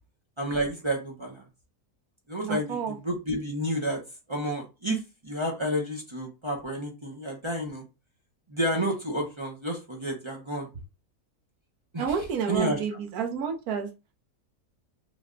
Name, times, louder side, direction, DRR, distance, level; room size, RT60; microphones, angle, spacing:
voice 1, 0.4-1.4 2.3-4.0 4.3-7.8 8.5-10.7 11.9-12.8, right 1 dB, 35° right, 0 dB, 0.5 m, -30 dB
voice 2, 2.5-2.9 12.0-13.9, right 6 dB, 90° right, 3 dB, 1.2 m, -30 dB
3.4 x 2.2 x 3.6 m, 0.28 s
omnidirectional pair, 1.5 m